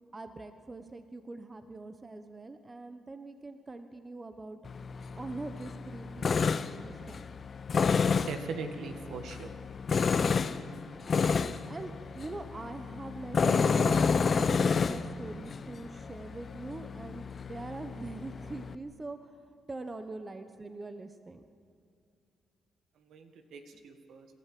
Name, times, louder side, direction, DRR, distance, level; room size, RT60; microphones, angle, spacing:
voice 1, 0.1-4.6 5.1-7.3 11.3-14.1 14.3-21.4, right 3 dB, 25° right, 9 dB, 1.1 m, -43 dB
Tools, 4.7-18.8, left 5 dB, 45° left, 0.7 m, -30 dB
voice 2, 8.3-9.5 23.0-24.3, right 4 dB, 75° right, 6 dB, 1.8 m, -40 dB
27.0 x 13.0 x 7.7 m, 2.3 s
cardioid pair, 90°, 0 cm